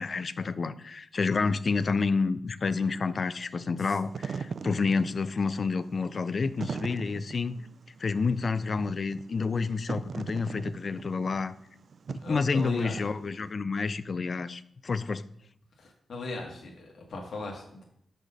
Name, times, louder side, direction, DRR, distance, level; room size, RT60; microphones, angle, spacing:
voice 1, 0.0-7.5 8.0-11.5 12.1-15.2, left 4 dB, 45° left, 14 dB, 0.4 m, -29 dB
Wind / Fire, 3.9-13.4, right 5 dB, 55° right, 0.3 m, -40 dB
voice 2, 12.2-12.9 15.8-17.8, left 2 dB, 65° left, -1 dB, 1.4 m, -38 dB
6.2 x 5.0 x 5.4 m, 0.69 s
wide cardioid pair, 125°, 0 cm